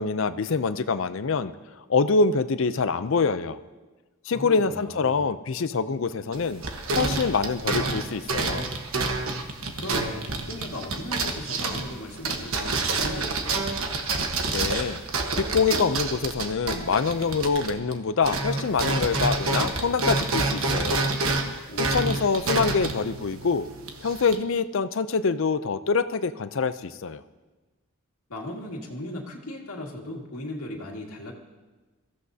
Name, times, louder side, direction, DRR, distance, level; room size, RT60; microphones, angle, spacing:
voice 1, 0.0-1.5 1.9-3.6 4.3-6.6 6.9-8.7 14.5-15.0 15.4-21.2 21.9-23.7 24.0-27.2, left 4 dB, 60° left, 13 dB, 0.5 m, -25 dB
voice 2, 4.3-5.3 9.7-13.7 21.7-22.2 28.3-31.3, left 1 dB, 85° left, -1 dB, 2.0 m, -37 dB
sound 1, 6.3-18.0 18.2-24.4, right 3 dB, 70° right, 1.3 m, -28 dB
22.5 x 15.0 x 2.8 m, 1.2 s
head